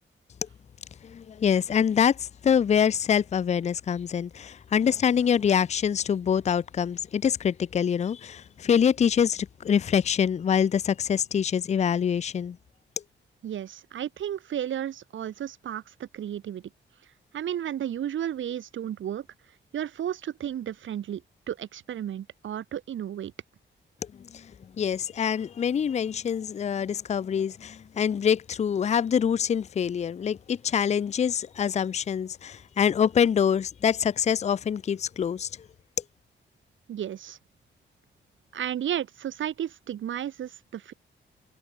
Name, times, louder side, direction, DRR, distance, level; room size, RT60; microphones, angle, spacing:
voice 1, 1.0-12.6 24.3-24.5 24.8-35.5, left 8 dB, 35° left, 0.5 m, -25 dB
voice 2, 13.4-16.6 17.3-19.3 19.7-21.2 21.5-23.3 36.9-37.4 38.5-40.9, right 10 dB, 75° right, 2.1 m, -33 dB
wide cardioid pair, 165°, 20 cm